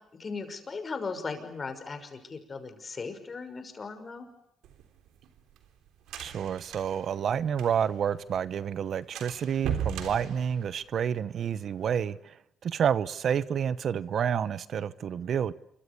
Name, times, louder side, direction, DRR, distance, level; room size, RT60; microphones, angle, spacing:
voice 1, 0.2-4.3, left 4 dB, 35° left, 5.8 m, -37 dB
sound 1, 4.6-8.0 8.3-8.4 8.7-8.8 9.2-11.2, right 8 dB, 90° right, 3.4 m, -37 dB
voice 2, 6.2-12.3 12.6-15.5, right 8 dB, 60° right, 0.9 m, -29 dB
28.0 x 24.0 x 6.9 m
cardioid pair, 90°, 0 cm